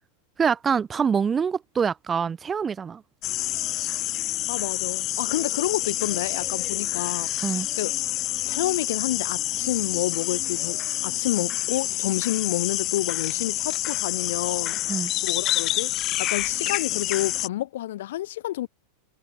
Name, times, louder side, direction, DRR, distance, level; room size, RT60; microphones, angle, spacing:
voice 1, 0.4-3.0 7.4-7.7 14.9-15.1, right 6 dB, 25° right, 2.7 m, -25 dB
sound 1, 3.2-17.5, left 15 dB, 40° left, 2.1 m, -28 dB
voice 2, 4.5-7.9 8.5-14.8 15.2-15.9 16.2-18.7, left 14 dB, 65° left, 7.4 m, -29 dB
hypercardioid pair, 95°, 0 cm